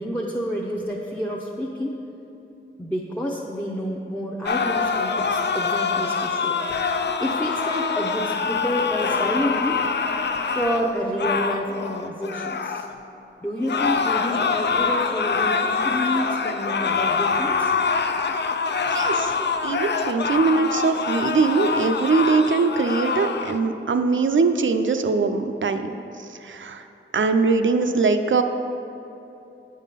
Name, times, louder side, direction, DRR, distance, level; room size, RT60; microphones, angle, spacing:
voice 1, 0.0-2.0 2.8-6.6 7.2-9.8 10.5-12.9 13.4-17.7 19.4-19.5, equal, 10° left, -2 dB, 0.6 m, -29 dB
sound 1, 4.5-12.9 13.6-23.6, left 5 dB, 55° left, 0.4 m, -25 dB
voice 2, 18.9-19.3 19.6-25.9 26.4-26.8 27.1-28.4, right 4 dB, 65° right, 8 dB, 0.4 m, -21 dB
8.9 x 3.6 x 5.7 m, 2.9 s
wide cardioid pair, 60°, 21 cm